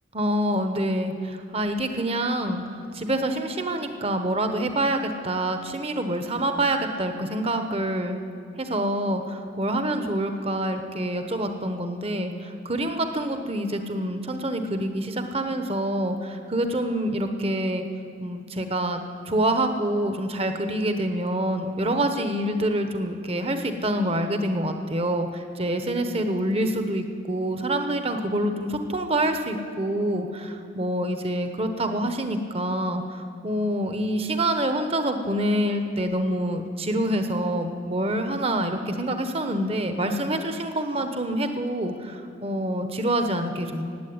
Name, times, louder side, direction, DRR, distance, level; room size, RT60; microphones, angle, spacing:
voice 1, 0.1-8.2 8.6-17.8 18.2-43.8, right 1 dB, 30° right, 7 dB, 1.0 m, -26 dB
16.5 x 8.5 x 9.5 m, 2.3 s
head